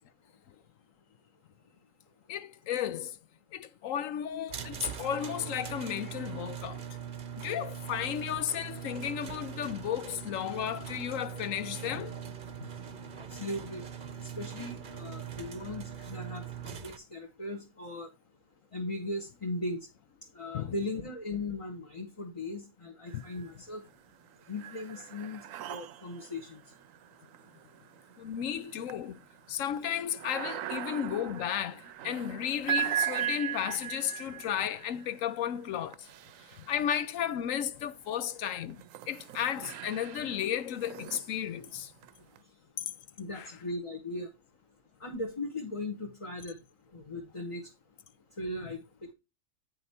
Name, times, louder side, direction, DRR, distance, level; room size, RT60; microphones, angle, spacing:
voice 1, 2.3-3.2 3.5-6.8 7.4-12.2 12.6-12.7 20.5-20.7 23.1-23.2 28.2-29.2 29.5-36.1 36.5-41.9 43.3-43.5, left 9 dB, 80° left, 1.1 m, -34 dB
sound 1, 4.5-17.0, right 8 dB, 45° right, 0.8 m, -41 dB
voice 2, 13.2-13.8 14.2-18.1 18.7-19.9 20.3-23.8 24.5-26.6 43.2-44.3 45.0-46.6 46.9-47.6 48.4-48.8, left 2 dB, 25° left, 1.3 m, -38 dB
sound 2, 23.1-23.7 24.1-37.3 37.9-42.4, right 11 dB, 80° right, 1.0 m, -39 dB
8.6 x 5.6 x 4.2 m
omnidirectional pair, 1.3 m